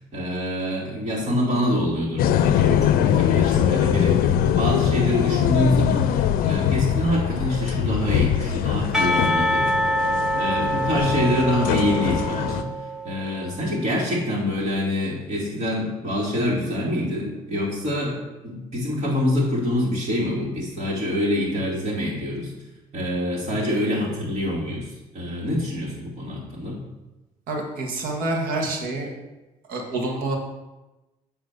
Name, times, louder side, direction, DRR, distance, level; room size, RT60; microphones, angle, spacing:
voice 1, 0.1-9.6 10.3-12.7 13.0-18.2 18.4-22.5 22.9-24.9 25.1-26.8, left 1 dB, 45° right, -6 dB, 2.5 m, -25 dB
sound 1, 2.2-12.6, left 9 dB, 75° left, 0.5 m, -22 dB
Percussion / Church bell, 8.9-13.4, equal, 5° right, 1.1 m, -25 dB
voice 2, 27.5-29.1 29.7-30.4, right 2 dB, 75° right, 1 dB, 1.6 m, -27 dB
8.6 x 3.3 x 6.6 m, 1.0 s
supercardioid pair, 80°, 15 cm